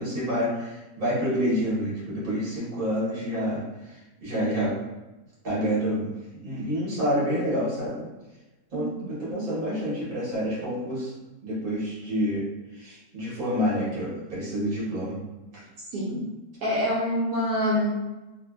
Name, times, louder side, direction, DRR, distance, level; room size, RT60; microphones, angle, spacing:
voice 1, 0.0-3.6 4.2-4.7 5.4-6.1 6.4-8.0 8.7-11.1 11.4-12.5 12.7-15.2 15.5-15.6, equal, 35° right, -8 dB, 1.2 m, -28 dB
voice 2, 15.9-16.3 16.6-18.0, left 1 dB, 75° right, -5 dB, 1.0 m, -26 dB
2.7 x 2.4 x 2.3 m, 1.1 s
omnidirectional pair, 1.7 m